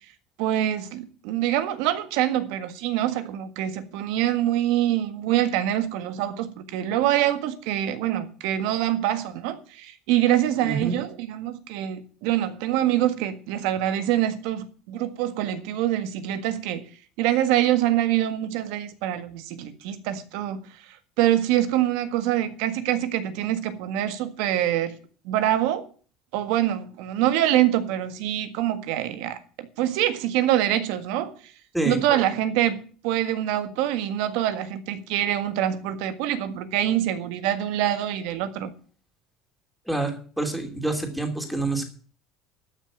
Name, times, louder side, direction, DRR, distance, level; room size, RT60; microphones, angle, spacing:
voice 1, 0.4-16.9 17.2-20.7 21.2-25.0 25.2-25.9 26.3-31.3 31.8-38.7, right 12 dB, 75° right, 1.6 m, -25 dB
voice 2, 10.6-11.0 31.7-32.0 39.9-41.8, right 2 dB, ahead, 2.9 m, -27 dB
13.0 x 6.2 x 8.7 m
cardioid pair, 135°, 0 cm